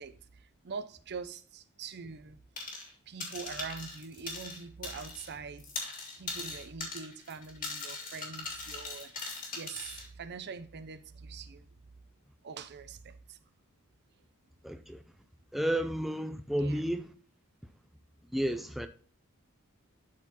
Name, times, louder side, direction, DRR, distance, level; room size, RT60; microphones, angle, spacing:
voice 1, 0.0-2.4 3.1-5.7 6.2-11.7 12.4-13.4 16.6-16.8, right 5 dB, 50° right, 0.6 m, -44 dB
sound 1, 2.6-2.9 3.2-5.3 5.6-10.1, left 3 dB, 40° left, 2.2 m, -40 dB
voice 2, 14.6-15.0 15.5-17.1 18.3-18.9, right 1 dB, ahead, 0.4 m, -31 dB
11.5 x 4.4 x 2.9 m
head